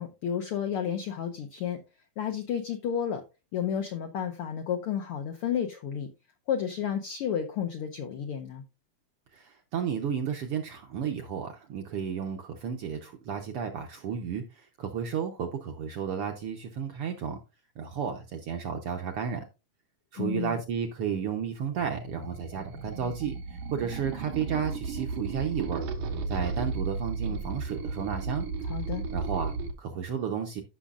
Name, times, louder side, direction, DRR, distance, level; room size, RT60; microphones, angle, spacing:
voice 1, 0.0-1.8 2.2-3.2 3.5-6.1 6.5-8.6 20.2-20.6 28.6-29.0, left 8 dB, 80° left, 6 dB, 1.2 m, -31 dB
voice 2, 9.3-17.4 17.8-19.4 20.1-25.8 26.3-28.5 29.1-30.6, right 7 dB, 70° right, 4 dB, 1.4 m, -33 dB
sound 1, 21.8-29.7, right 4 dB, 90° right, 2.8 m, -34 dB
14.0 x 6.2 x 2.4 m, 0.28 s
omnidirectional pair, 3.5 m